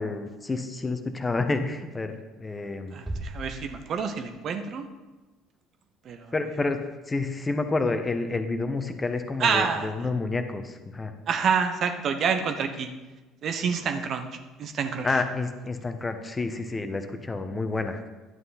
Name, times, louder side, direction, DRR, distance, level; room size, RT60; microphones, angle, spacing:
voice 1, 0.0-3.0 6.3-6.8 7.1-11.1 15.0-18.0, left 3 dB, 20° left, 7 dB, 1.1 m, -29 dB
voice 2, 2.9-4.9 6.0-6.3 9.4-9.9 11.3-12.9 13.4-14.3 14.6-15.1, right 6 dB, 50° right, 7 dB, 1.0 m, -27 dB
sound 1, 3.1-5.0, right 1 dB, 15° right, 1.2 m, -39 dB
11.0 x 9.0 x 4.2 m, 1.2 s
figure-of-eight pair, 55°, 0 cm